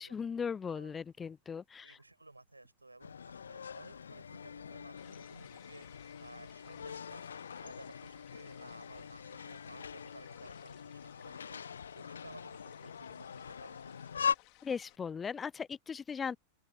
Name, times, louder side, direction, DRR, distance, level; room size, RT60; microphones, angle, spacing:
voice 1, 0.0-1.9 14.6-16.4, left 6 dB, 20° left, 0.7 m, -38 dB
voice 2, 0.7-1.1 1.8-5.9 6.2-7.3 7.6-11.6 11.9-14.1, right 2 dB, 85° right, 7.8 m, -55 dB
sound 1, 3.0-14.4, left 7 dB, 70° left, 1.5 m, -42 dB
sound 2, 5.0-15.0, left 28 dB, 45° left, 5.1 m, -62 dB
open air
figure-of-eight pair, 90°, 0 cm